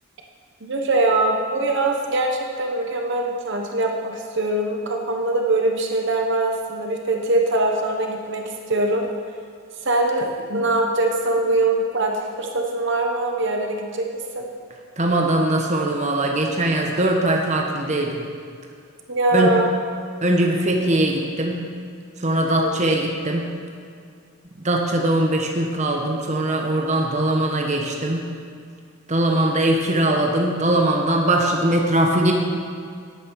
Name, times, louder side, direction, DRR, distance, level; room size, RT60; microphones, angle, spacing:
voice 1, 0.6-9.1 9.8-14.1 14.3-14.5 19.1-19.7 22.6-22.7, right 2 dB, 55° right, 2 dB, 1.0 m, -22 dB
voice 2, 15.0-18.2 19.3-19.6 20.2-21.7 22.2-23.5 24.6-28.3 29.1-32.3, right 1 dB, 35° right, 1 dB, 1.1 m, -21 dB
12.0 x 8.9 x 4.7 m, 2.3 s
head